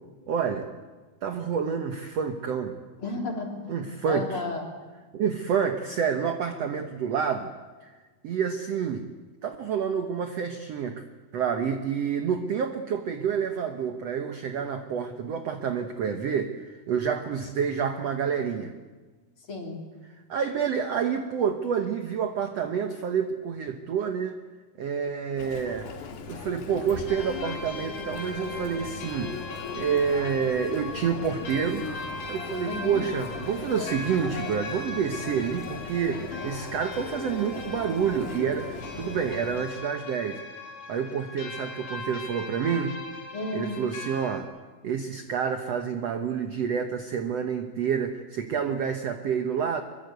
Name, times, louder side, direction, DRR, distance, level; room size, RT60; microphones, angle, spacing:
voice 1, 0.3-0.7 1.2-2.8 3.7-4.4 5.1-7.5 7.8-7.9 8.2-9.1 9.4-11.0 11.3-18.7 20.3-24.4 24.8-25.9 26.3-29.4 29.7-31.9 32.3-40.4 40.9-43.0 43.5-44.5 44.8-49.8, right 7 dB, 75° right, 7 dB, 1.4 m, -28 dB
voice 2, 3.0-3.7 4.1-4.6 19.5-19.8 32.6-33.1 43.3-43.8, left 2 dB, 35° left, 1 dB, 3.6 m, -32 dB
Chatter, 25.4-39.7, left 6 dB, 85° left, 3.9 m, -39 dB
sound 1, 27.1-44.4, left 2 dB, 65° left, 4.9 m, -40 dB
24.0 x 23.0 x 8.0 m, 1.4 s
omnidirectional pair, 4.6 m